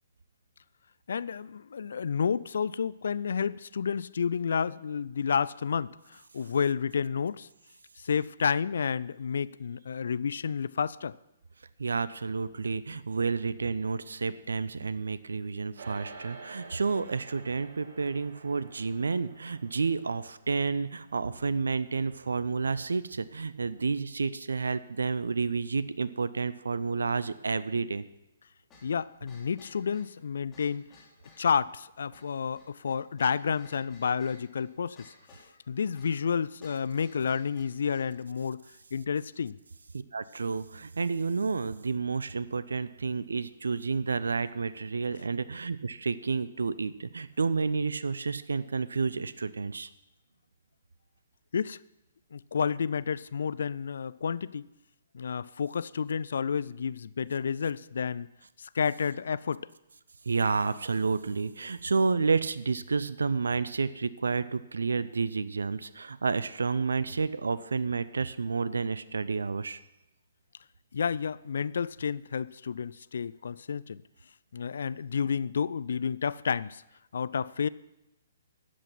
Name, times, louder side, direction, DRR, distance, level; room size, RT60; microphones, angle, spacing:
voice 1, 1.1-7.5 8.0-11.2 28.8-30.9 31.4-35.1 35.7-38.6 38.9-39.6 51.5-51.8 52.3-54.7 55.1-58.3 58.6-59.7 70.9-74.0 74.5-76.8 77.1-77.7, left 6 dB, 60° left, 19 dB, 0.3 m, -30 dB
voice 2, 11.8-28.0 39.9-49.9 60.3-69.8, right 4 dB, 70° right, 16 dB, 0.5 m, -30 dB
sound 1, 15.8-25.3, right 4 dB, 55° right, 1.6 m, -51 dB
sound 2, 28.7-38.2, left 3 dB, 20° left, 3.4 m, -58 dB
12.5 x 8.2 x 5.9 m, 0.90 s
figure-of-eight pair, 125°, 0 cm